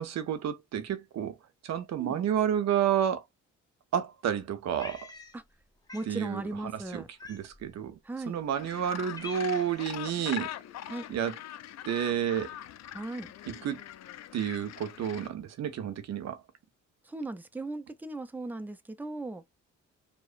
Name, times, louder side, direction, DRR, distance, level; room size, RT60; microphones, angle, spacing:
voice 1, 0.0-1.3 1.6-3.2 3.9-5.1 6.1-6.4 6.9-7.0 7.3-7.9 8.3-10.5 11.1-11.3 11.9-12.5 13.5-13.8 14.3-16.4, right 9 dB, 60° right, 0.7 m, -30 dB
Cat, 4.8-5.6 5.9-6.1 7.2-7.7 8.4-8.5 8.8-9.8, left 3 dB, 15° left, 0.8 m, -46 dB
voice 2, 5.9-7.1 8.0-8.4 10.9-11.1 12.9-13.3 17.0-19.4, right 2 dB, 5° right, 0.4 m, -37 dB
Gull seagull, 8.6-15.3, left 12 dB, 60° left, 0.5 m, -43 dB
2.8 x 2.0 x 2.5 m
cardioid pair, 90°, 30 cm